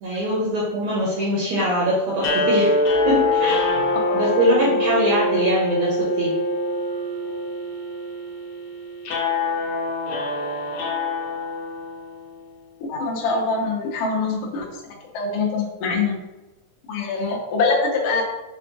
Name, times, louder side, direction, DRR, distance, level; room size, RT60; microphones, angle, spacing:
voice 1, 0.0-2.8 3.1-3.7 4.1-6.3, equal, 75° right, -6 dB, 1.7 m, -22 dB
sound 1, 2.2-12.4, left 2 dB, 70° left, 2.0 m, -24 dB
voice 2, 12.8-14.7 15.1-16.2 16.9-18.2, left 4 dB, 90° left, -3 dB, 1.3 m, -23 dB
6.0 x 2.3 x 2.7 m, 1.1 s
omnidirectional pair, 4.0 m